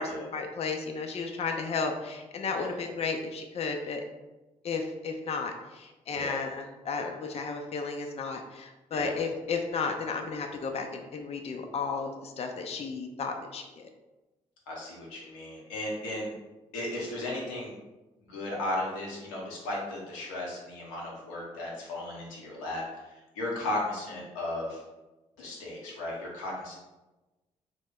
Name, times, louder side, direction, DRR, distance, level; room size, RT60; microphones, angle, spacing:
voice 1, 0.0-4.0 4.6-13.9, left 4 dB, 40° left, 4 dB, 0.4 m, -33 dB
voice 2, 14.7-16.3 16.7-17.7 18.2-24.8 25.4-26.7, left 1 dB, 90° left, -3 dB, 0.6 m, -35 dB
2.9 x 2.1 x 3.4 m, 1.1 s
hypercardioid pair, 40°, 16 cm